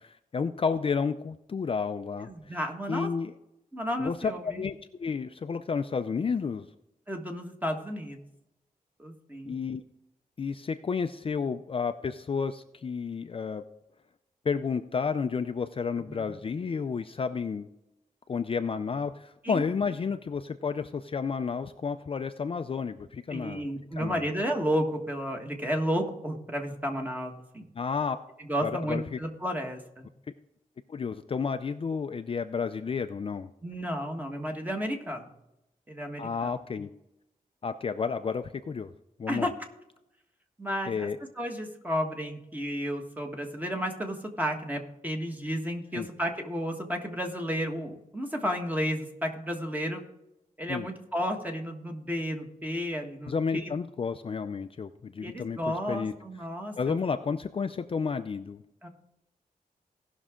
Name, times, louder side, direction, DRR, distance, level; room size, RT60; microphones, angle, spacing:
voice 1, 0.0-2.6 2.9-3.3 4.0-6.7 9.5-9.8 10.4-13.6 14.4-17.7 18.3-23.7 24.0-24.3 27.8-28.2 28.6-29.2 30.9-33.5 36.2-36.9 37.6-38.9 39.2-39.5 40.9-41.2 45.9-46.1 50.7-50.9 53.3-56.1 56.8-58.6, left 5 dB, 40° left, 9 dB, 0.4 m, -31 dB
voice 2, 2.3-3.1 3.7-4.7 7.1-8.2 9.0-9.5 16.0-16.3 19.4-19.6 23.3-27.6 28.5-30.1 33.6-35.3 35.9-36.5 39.3-39.5 40.6-41.1 41.4-50.0 50.6-53.7 55.2-57.0 58.8-58.9, equal, 10° right, 2 dB, 1.5 m, -32 dB
17.5 x 6.2 x 3.7 m, 0.88 s
wide cardioid pair, 140°, 15 cm